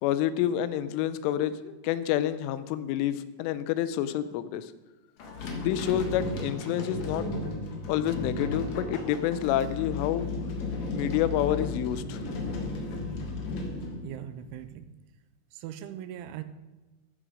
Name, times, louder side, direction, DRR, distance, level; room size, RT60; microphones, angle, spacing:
voice 1, 0.0-4.7 5.6-7.3 7.9-10.3 10.9-12.2, left 11 dB, 90° left, 13 dB, 3.2 m, -28 dB
sound 1, 5.2-14.6, left 3 dB, 60° left, 1.8 m, -34 dB
voice 2, 14.0-14.9 15.5-16.4, right 11 dB, 85° right, 11 dB, 3.0 m, -40 dB
14.0 x 7.7 x 5.1 m, 1.1 s
omnidirectional pair, 5.6 m